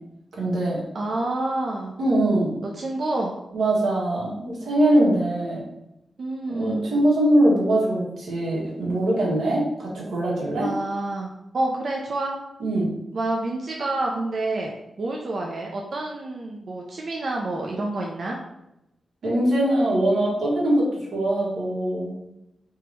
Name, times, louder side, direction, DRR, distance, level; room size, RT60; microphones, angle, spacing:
voice 1, 0.3-0.8 2.0-2.6 3.5-5.6 6.5-10.7 12.6-12.9 19.2-22.2, right 1 dB, 85° right, -4 dB, 1.6 m, -22 dB
voice 2, 0.9-1.9 2.7-3.3 6.2-6.9 10.6-12.3 13.1-14.7 15.0-18.4, right 2 dB, 50° right, -1 dB, 0.5 m, -28 dB
3.5 x 2.9 x 4.6 m, 0.87 s
wide cardioid pair, 135°, 0 cm